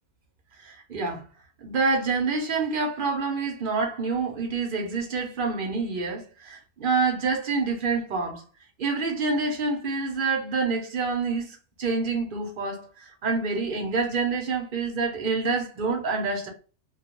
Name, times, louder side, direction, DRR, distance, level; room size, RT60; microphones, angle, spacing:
voice 1, 0.6-1.2 1.6-8.4 8.8-16.5, right 4 dB, 50° right, 0.8 m, -27 dB
2.3 x 2.2 x 2.9 m
omnidirectional pair, 1.3 m